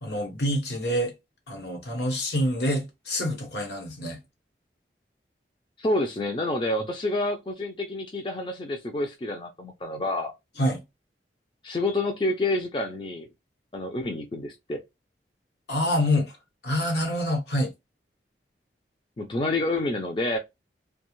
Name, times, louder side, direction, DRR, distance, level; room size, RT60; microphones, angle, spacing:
voice 1, 0.0-1.1 1.5-4.2 10.6-10.8 15.7-16.4 16.6-17.7, left 1 dB, 75° left, 1.1 m, -26 dB
voice 2, 5.8-10.3 11.6-13.3 13.7-14.8 19.2-20.4, left 2 dB, 30° left, 0.4 m, -28 dB
2.4 x 2.2 x 3.0 m
head